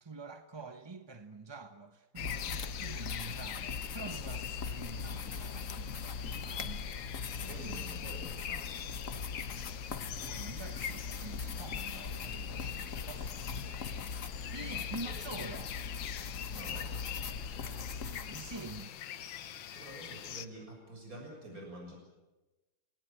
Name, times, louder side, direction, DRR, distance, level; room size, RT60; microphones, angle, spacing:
voice 1, 0.0-6.9 7.6-7.8 10.1-14.0 14.5-15.7 17.6-19.0, right 3 dB, 25° right, 0.6 m, -47 dB
sound 1, 2.2-20.5, left 10 dB, 80° left, 1.8 m, -43 dB
sound 2, 2.2-18.8, left 5 dB, 45° left, 1.4 m, -41 dB
voice 2, 7.4-8.8 14.6-15.2 16.5-16.9 19.7-21.9, right 1 dB, 45° right, 7.4 m, -48 dB
28.0 x 18.5 x 8.9 m
omnidirectional pair, 2.1 m